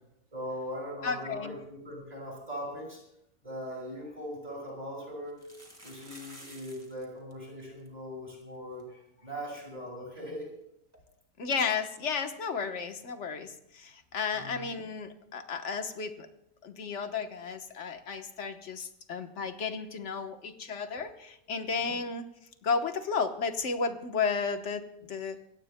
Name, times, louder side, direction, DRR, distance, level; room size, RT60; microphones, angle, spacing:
voice 1, 0.3-3.0 3.4-5.5 5.8-10.5 14.3-14.8 21.8-22.0, equal, 30° right, -2 dB, 5.8 m, -40 dB
voice 2, 1.0-1.6 11.4-16.3 16.6-22.3 22.6-25.4, left 5 dB, 55° left, 7 dB, 1.4 m, -33 dB
sound 1, 4.1-4.2 5.3-7.0 7.3-7.4 7.6-7.9 8.4-8.5 8.8-8.9 10.9-11.0, right 1 dB, 10° right, 2.3 m, -51 dB
24.5 x 17.5 x 2.2 m, 0.81 s
omnidirectional pair, 1.5 m